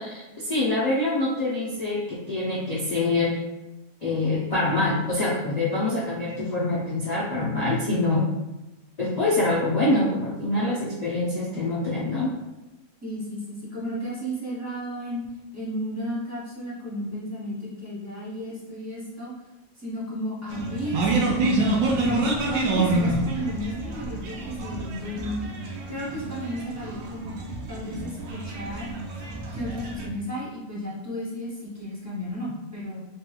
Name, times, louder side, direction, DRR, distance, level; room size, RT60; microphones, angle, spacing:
voice 1, 0.0-3.3 4.0-8.3 9.0-12.3, left 2 dB, 60° left, -8 dB, 0.4 m, -25 dB
voice 2, 13.0-15.2 15.5-19.3 19.8-22.2 22.5-25.3 25.9-27.3 27.7-28.9 29.5-33.0, equal, 20° right, -7 dB, 0.4 m, -33 dB
sound 1, 20.5-30.1, right 2 dB, 90° right, 1.0 m, -27 dB
3.3 x 2.9 x 2.3 m, 0.97 s
omnidirectional pair, 1.5 m